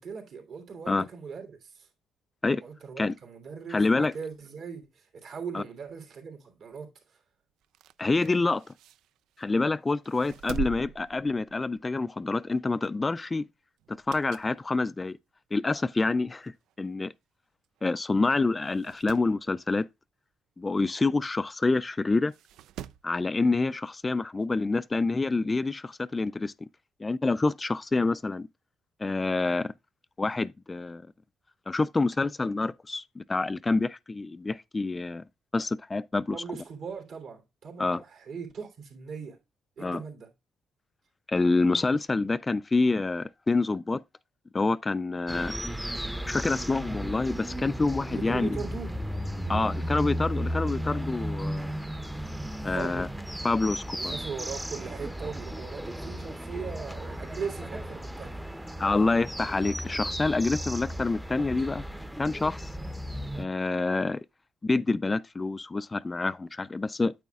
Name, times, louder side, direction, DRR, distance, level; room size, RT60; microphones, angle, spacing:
voice 1, 0.0-1.9 2.6-7.2 36.3-39.4 39.8-40.3 48.0-48.9 49.5-49.8 52.7-53.1 54.0-58.4, right 6 dB, 65° right, 3.1 m, -39 dB
voice 2, 3.7-4.1 5.5-5.6 8.0-8.6 9.4-13.5 13.9-15.2 15.5-16.5 16.8-17.1 17.8-19.9 20.6-22.3 23.0-26.5 27.0-28.5 29.0-29.7 30.2-31.0 31.7-35.2 35.5-36.4 37.8-38.0 39.8-40.0 41.3-44.0 44.5-45.5 46.3-48.6 49.5-51.7 52.6-53.1 53.4-54.1 58.8-61.8 62.2-62.7 63.4-64.2 64.6-67.1, left 3 dB, 25° left, 0.3 m, -27 dB
sound 1, 7.6-9.6 10.0-11.9 12.3-12.5 13.8-14.6 15.1-15.2 16.1-16.2 16.4-16.5 16.7-16.8 17.6-17.8 18.1-18.2 18.6-19.3 21.2-21.3 22.3-23.1 24.4-24.5, right 9 dB, 85° right, 0.4 m, -42 dB
sound 2, 45.3-63.4, equal, 5° right, 0.7 m, -35 dB
9.2 x 8.3 x 2.3 m
cardioid pair, 90°, 0 cm